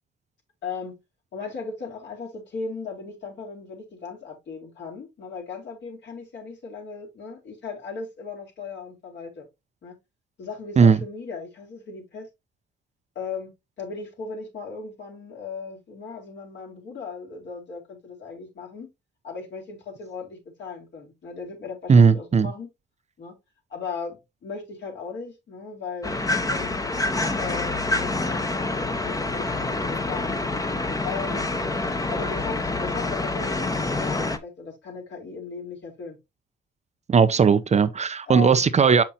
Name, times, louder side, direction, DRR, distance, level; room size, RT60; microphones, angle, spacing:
voice 1, 0.6-0.9 1.3-9.5 9.8-9.9 10.4-12.3 13.2-13.5 13.8-18.9 19.2-22.7 23.2-23.3 23.7-26.8 27.4-30.4 31.0-31.5 32.1-36.2 37.3-37.5 38.3-38.7, left 5 dB, 65° left, 3.8 m, -37 dB
voice 2, 21.9-22.5 37.1-39.0, right 5 dB, 35° right, 0.6 m, -17 dB
sound 1, 26.0-34.4, left 2 dB, 15° left, 1.0 m, -27 dB
6.9 x 5.8 x 2.8 m
cardioid pair, 90°, 20 cm